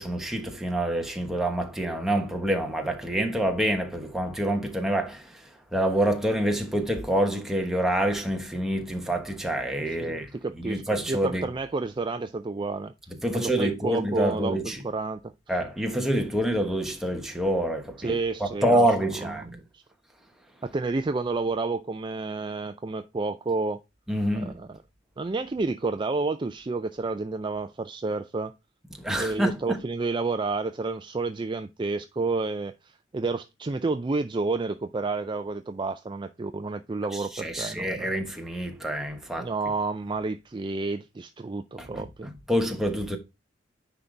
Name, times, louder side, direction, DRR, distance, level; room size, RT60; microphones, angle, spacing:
voice 1, 0.0-11.5 13.2-14.8 15.5-19.6 24.1-24.6 29.0-29.8 37.1-39.5 41.8-43.2, right 1 dB, ahead, 1.2 m, -27 dB
voice 2, 10.0-10.8 11.1-12.9 13.3-14.6 14.8-15.2 18.0-18.9 19.4-19.8 20.6-23.8 24.3-24.7 25.2-28.5 29.2-38.1 39.4-42.3, right 3 dB, 25° right, 0.4 m, -30 dB
9.7 x 4.0 x 3.3 m
head